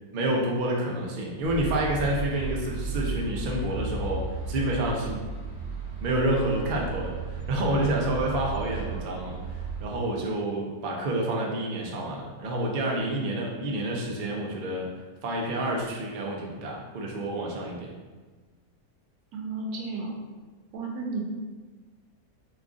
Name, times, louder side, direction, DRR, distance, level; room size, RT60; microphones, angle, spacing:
voice 1, 0.1-5.2 6.0-14.9 15.2-17.9, right 1 dB, 60° right, -2 dB, 0.5 m, -29 dB
sound 1, 1.4-9.8, right 4 dB, 40° left, 1.3 m, -34 dB
voice 2, 19.3-20.2 20.7-21.2, right 3 dB, 85° right, 0 dB, 1.2 m, -33 dB
3.0 x 2.4 x 3.6 m, 1.3 s
omnidirectional pair, 1.6 m